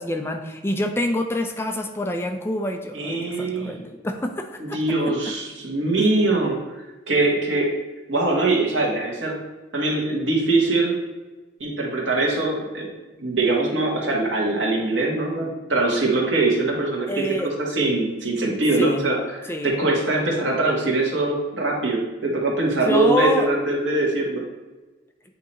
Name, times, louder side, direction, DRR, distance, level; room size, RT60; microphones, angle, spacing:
voice 1, 0.0-4.8 6.0-6.1 17.1-17.5 18.8-19.1 19.5-19.8 22.8-23.5, left 1 dB, 15° left, 5 dB, 0.4 m, -26 dB
voice 2, 2.9-3.8 4.6-6.6 7.1-7.7 8.1-9.4 9.7-10.9 11.6-12.9 13.2-17.3 17.6-24.4, right 2 dB, 90° right, -1 dB, 1.6 m, -22 dB
8.4 x 2.9 x 4.3 m, 1.2 s
head